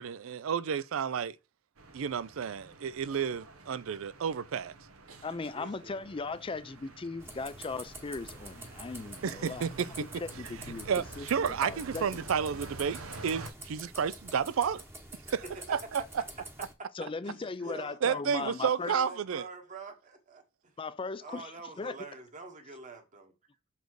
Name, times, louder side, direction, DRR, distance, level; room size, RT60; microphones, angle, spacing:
voice 1, 0.0-1.4 1.9-4.7 9.2-9.9 10.9-14.8 15.3-15.4 15.7-16.0 18.0-19.4, right 7 dB, 70° right, 0.4 m, -31 dB
sound 1, 1.8-13.5, right 2 dB, 90° right, 0.9 m, -48 dB
voice 2, 3.9-4.2 5.5-6.0 15.3-15.6 17.2-18.6 18.8-20.4 21.2-23.0, right 3 dB, 35° right, 1.2 m, -45 dB
voice 3, 5.2-9.7 10.0-10.9 11.2-12.2 16.9-19.0 20.8-21.5 21.8-22.0, left 3 dB, 25° left, 0.4 m, -38 dB
sound 2, 7.2-16.7, right 1 dB, 10° right, 1.0 m, -48 dB
6.6 x 4.2 x 4.7 m
head